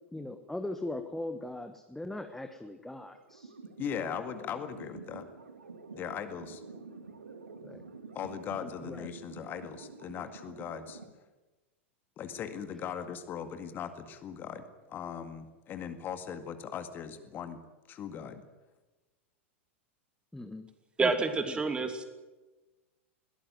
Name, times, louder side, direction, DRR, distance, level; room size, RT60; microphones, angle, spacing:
voice 1, 0.1-3.5 7.6-7.8 8.6-9.1 20.3-20.7 21.0-21.9, left 1 dB, 5° left, 8 dB, 1.3 m, -40 dB
sound 1, 3.1-11.1, right 4 dB, 75° right, 2.4 m, -49 dB
voice 2, 3.8-5.3 5.9-6.6 8.2-11.0 12.2-14.6 14.9-17.6 17.9-18.4, left 8 dB, 30° left, 9 dB, 2.0 m, -39 dB
voice 3, 21.0-22.0, right 4 dB, 15° right, 8 dB, 2.7 m, -28 dB
22.0 x 17.0 x 9.4 m, 1.2 s
figure-of-eight pair, 90°, 7 cm